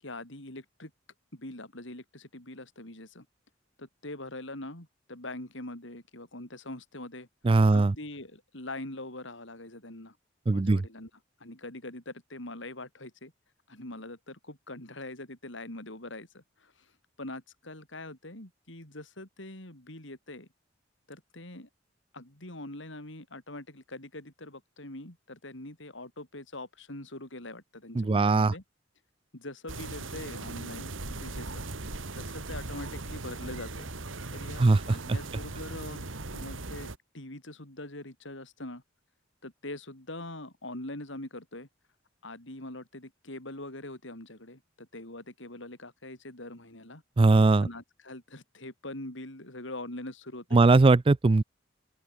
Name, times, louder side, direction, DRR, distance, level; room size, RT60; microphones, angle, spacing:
voice 1, 0.0-0.9 1.3-3.3 3.8-7.3 7.7-10.2 10.5-11.1 11.4-13.3 13.7-16.9 17.2-20.5 21.1-21.7 22.1-28.6 29.3-31.7 32.1-33.9 34.3-36.1 36.3-38.8 39.4-41.7 42.2-47.0 47.6-50.6, left 1 dB, 70° left, 5.9 m, -43 dB
voice 2, 7.4-7.9 10.5-10.8 28.0-28.5 34.6-34.8 47.2-47.7 50.5-51.4, right 3 dB, 25° right, 0.4 m, -20 dB
sound 1, 29.7-37.0, right 2 dB, 80° right, 2.1 m, -39 dB
open air
head